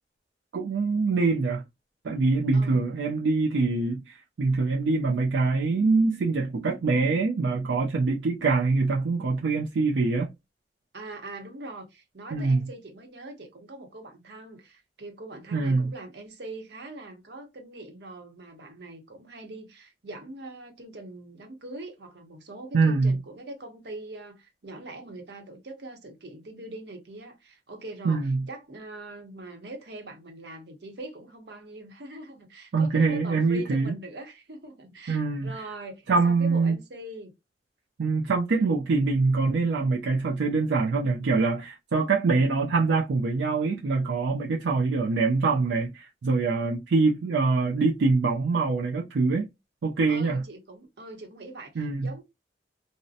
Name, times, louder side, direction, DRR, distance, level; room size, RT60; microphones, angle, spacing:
voice 1, 0.5-1.6 2.0-10.3 12.3-12.6 15.5-15.9 22.7-23.2 28.0-28.4 32.7-33.9 35.1-35.5 36.1-36.8 38.0-49.5 49.8-50.4 51.8-52.1, right 3 dB, 80° right, 0.4 m, -24 dB
voice 2, 2.5-2.8 10.9-37.3 50.1-52.2, right 2 dB, 65° right, 0.8 m, -42 dB
2.7 x 2.1 x 2.4 m
head